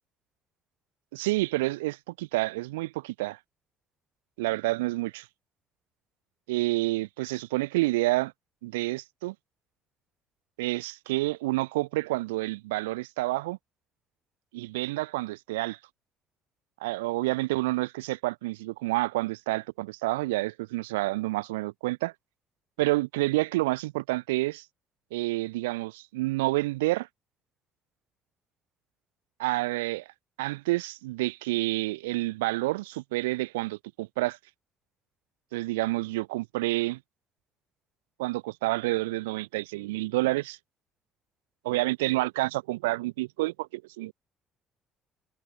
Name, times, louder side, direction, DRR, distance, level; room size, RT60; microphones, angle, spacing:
voice 1, 1.1-3.4 4.4-5.3 6.5-8.3 8.6-9.3 10.6-13.6 14.5-15.8 16.8-22.1 22.8-24.7 25.1-27.1 29.4-30.1 30.4-34.4 35.5-37.0 38.2-40.6 41.6-44.1, right 20 dB, 80° right, 0.5 m, -29 dB
hypercardioid pair, 55°, 0 cm